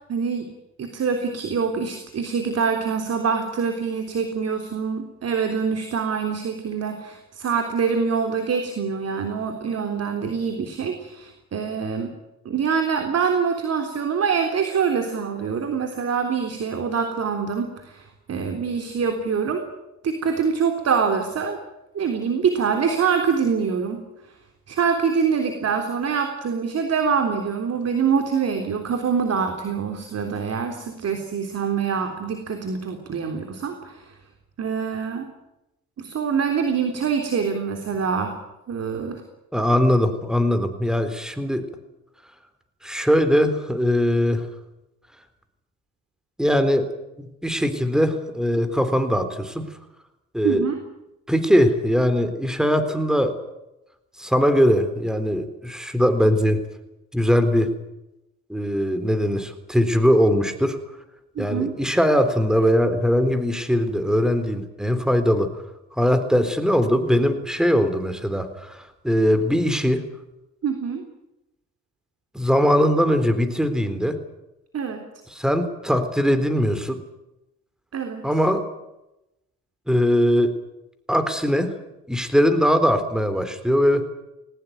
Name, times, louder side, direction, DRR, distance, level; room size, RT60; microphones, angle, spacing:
voice 1, 0.1-0.5 0.8-12.1 12.5-19.6 20.0-21.6 21.9-24.0 24.7-34.1 34.6-35.3 36.0-38.4 38.7-39.2 50.4-50.8 61.4-61.7 70.6-71.0 74.7-75.0 77.9-78.2, right 6 dB, 55° right, 5 dB, 3.6 m, -25 dB
voice 2, 39.5-41.7 42.8-44.5 46.4-46.9 47.2-49.7 50.3-50.6 51.3-53.3 54.2-56.6 57.1-57.7 58.5-60.8 61.4-65.5 65.9-70.0 72.3-74.2 75.4-77.0 78.2-78.7 79.9-80.6 81.1-81.8 82.1-84.1, equal, ahead, 10 dB, 3.8 m, -21 dB
21.0 x 19.0 x 9.5 m, 0.92 s
cardioid pair, 90°, 30 cm